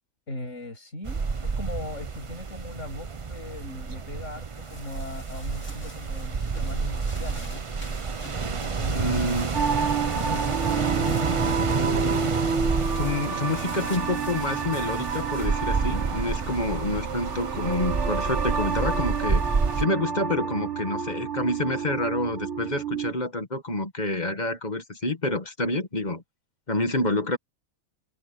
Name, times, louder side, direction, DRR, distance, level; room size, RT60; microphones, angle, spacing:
voice 1, 0.3-7.6 8.4-9.7 10.1-10.5 10.9-12.3, left 1 dB, 55° left, 8.0 m, -38 dB
sound 1, 1.1-19.9, right 5 dB, 30° right, 0.6 m, -29 dB
sound 2, 4.4-16.9, left 2 dB, 70° left, 6.0 m, -49 dB
voice 2, 8.9-9.5 11.4-11.5 12.9-19.4 19.8-26.2 26.7-27.4, left 2 dB, 30° left, 1.8 m, -28 dB
sound 3, 9.5-23.1, right 5 dB, 55° right, 1.6 m, -30 dB
omnidirectional pair, 1.5 m